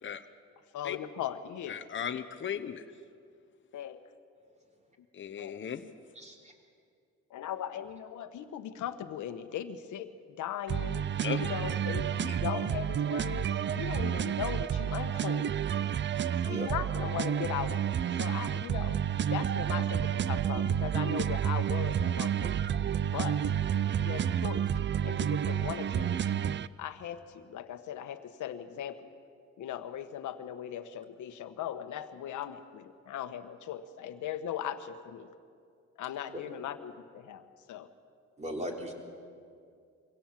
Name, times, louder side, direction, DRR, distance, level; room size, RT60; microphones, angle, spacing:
voice 1, 0.7-1.8 3.7-4.1 5.4-5.6 7.3-11.0 11.3-15.5 16.4-19.0 19.3-22.6 23.1-23.4 24.0-24.7 25.0-26.3 26.8-29.1 29.6-35.3 36.0-37.9, left 10 dB, 75° left, 10 dB, 1.3 m, -39 dB
voice 2, 1.7-2.8 5.1-5.9 11.2-11.4, left 8 dB, 40° left, 8 dB, 1.0 m, -36 dB
voice 3, 6.1-6.5 12.3-12.4 16.4-16.7 23.8-23.9 36.3-36.4 38.4-38.9, equal, 25° right, 1 dB, 3.6 m, -38 dB
sound 1, 10.7-26.7, right 9 dB, 40° right, 0.5 m, -30 dB
24.0 x 17.0 x 7.4 m, 2.3 s
cardioid pair, 90°, 30 cm